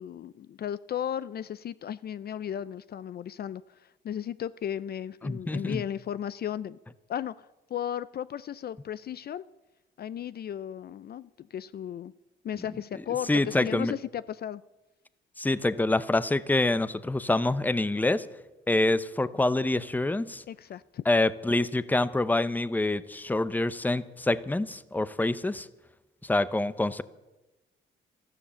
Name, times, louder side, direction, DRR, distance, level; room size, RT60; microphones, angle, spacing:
voice 1, 0.0-6.8 7.1-9.4 10.0-12.1 12.4-14.6 20.5-21.0, left 10 dB, 50° left, 0.5 m, -35 dB
voice 2, 5.2-5.8 13.3-13.9 15.4-18.3 18.7-20.4 21.1-25.7 26.2-27.0, left 2 dB, 10° left, 0.7 m, -26 dB
13.0 x 12.5 x 8.8 m
cardioid pair, 90°, 20 cm